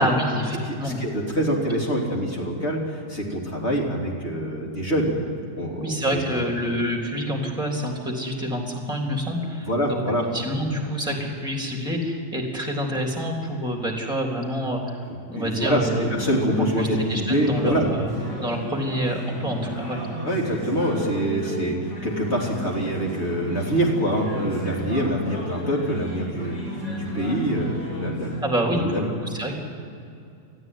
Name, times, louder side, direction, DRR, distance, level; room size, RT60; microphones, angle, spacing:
voice 1, 0.0-1.0 5.8-10.0 10.3-15.0 15.3-16.1 16.6-18.1 18.4-20.0 28.4-29.5, equal, ahead, 1 dB, 3.5 m, -27 dB
voice 2, 0.6-5.2 5.6-6.5 9.6-10.3 15.3-15.8 16.1-17.9 20.2-28.3 28.7-29.1, right 1 dB, 40° left, -2 dB, 3.6 m, -25 dB
sound 1, 15.9-28.4, equal, 80° left, 7.3 m, -33 dB
20.0 x 14.5 x 9.4 m, 2.5 s
omnidirectional pair, 1.9 m